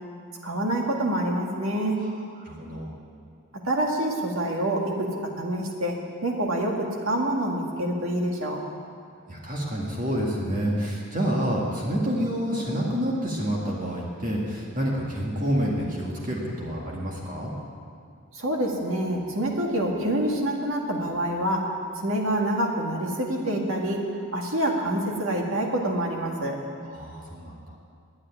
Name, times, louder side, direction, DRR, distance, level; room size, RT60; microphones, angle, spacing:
voice 1, 0.4-2.0 3.6-8.6 18.3-21.7 21.9-24.0 24.3-26.6, right 1 dB, 70° right, 0 dB, 1.9 m, -26 dB
voice 2, 2.4-2.9 9.3-17.5 26.8-27.8, equal, 40° right, -3 dB, 1.9 m, -28 dB
9.8 x 9.8 x 9.7 m, 2.2 s
head